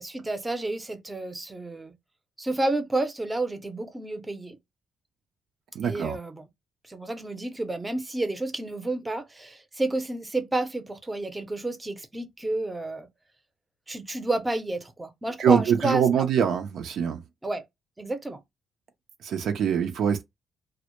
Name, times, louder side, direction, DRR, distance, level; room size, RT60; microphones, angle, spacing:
voice 1, 0.0-1.9 2.4-4.6 5.8-6.5 6.9-13.1 13.9-16.3 17.4-17.6 18.0-18.4, right 2 dB, 15° right, 0.5 m, -30 dB
voice 2, 5.8-6.2 15.4-17.2 19.2-20.2, right 8 dB, 70° right, 0.4 m, -23 dB
2.1 x 2.0 x 2.9 m
cardioid pair, 90°, 0 cm